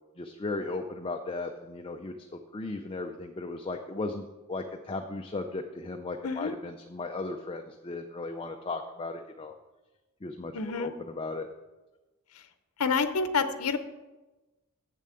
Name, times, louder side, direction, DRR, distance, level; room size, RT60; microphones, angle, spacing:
voice 1, 0.2-9.5 10.2-11.5, left 3 dB, 25° left, 5 dB, 0.5 m, -36 dB
voice 2, 6.2-6.5 10.5-10.9 12.3-12.4 12.8-13.8, left 5 dB, 70° left, 9 dB, 0.8 m, -28 dB
7.6 x 7.1 x 8.3 m, 1.1 s
head